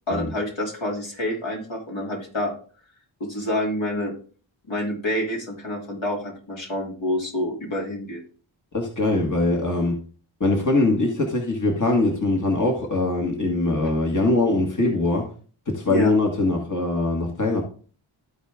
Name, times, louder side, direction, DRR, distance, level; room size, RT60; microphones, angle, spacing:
voice 1, 0.1-2.5 3.2-4.1 4.7-8.2 15.9-16.1, left 1 dB, 75° left, -2 dB, 2.8 m, -27 dB
voice 2, 8.7-9.9 10.4-15.3 15.7-17.6, left 2 dB, 40° left, 0 dB, 1.8 m, -22 dB
13.0 x 4.4 x 3.5 m, 0.40 s
wide cardioid pair, 70°, 47 cm